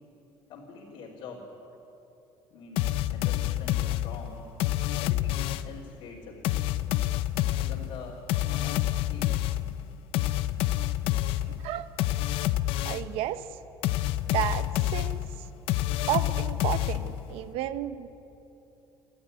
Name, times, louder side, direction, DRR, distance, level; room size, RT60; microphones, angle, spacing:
voice 1, 0.5-1.5 2.5-4.5 5.0-6.5 7.4-9.3, left 4 dB, 60° left, -4 dB, 3.4 m, -45 dB
sound 1, 2.8-5.8 6.4-13.2 13.8-17.3, left 14 dB, 75° left, 0.7 m, -28 dB
voice 2, 12.8-13.4 14.3-15.2 16.1-18.1, right 12 dB, 80° right, 12 dB, 1.0 m, -32 dB
28.5 x 13.0 x 9.7 m, 3.0 s
cardioid pair, 180°, 10 cm